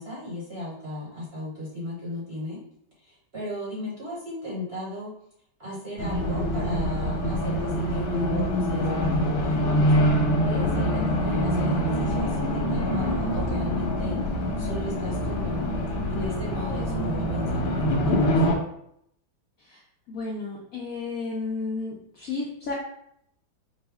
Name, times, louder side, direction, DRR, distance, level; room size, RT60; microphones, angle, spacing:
voice 1, 0.0-2.6 3.0-5.1 5.6-15.7 16.1-18.4, left 1 dB, 45° right, -6 dB, 0.8 m, -35 dB
Race car auto racing, 6.0-18.6, equal, 90° left, 1.6 m, -25 dB
voice 2, 20.1-22.7, left 3 dB, 70° left, -4 dB, 0.8 m, -32 dB
5.1 x 2.0 x 3.4 m, 0.71 s
omnidirectional pair, 2.1 m